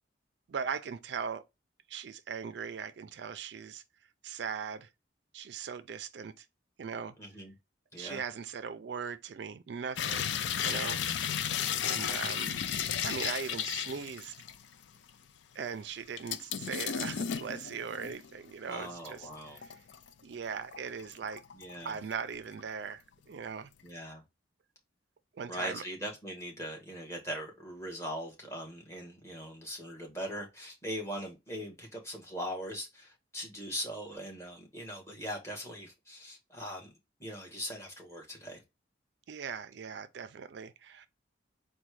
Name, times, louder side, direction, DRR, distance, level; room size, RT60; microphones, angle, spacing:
voice 1, 0.5-1.4 1.9-3.8 4.2-4.9 5.3-6.5 6.8-7.1 8.0-10.3 10.6-11.0 11.8-12.6 13.0-14.3 15.5-19.3 19.5-19.8 20.2-21.4 21.8-23.7 25.4-25.8 39.3-41.1, right 6 dB, 65° right, 0.4 m, -39 dB
voice 2, 7.2-7.5 7.9-8.2 18.7-19.6 21.5-21.9 23.8-24.2 25.5-36.9 37.2-38.6, equal, 15° left, 1.4 m, -40 dB
sound 1, 10.0-14.7 15.1-15.2 16.2-18.3 18.8-20.1 20.5-21.7 22.1-22.6 22.9-23.0, left 8 dB, 70° left, 0.4 m, -34 dB
4.2 x 2.2 x 4.6 m
head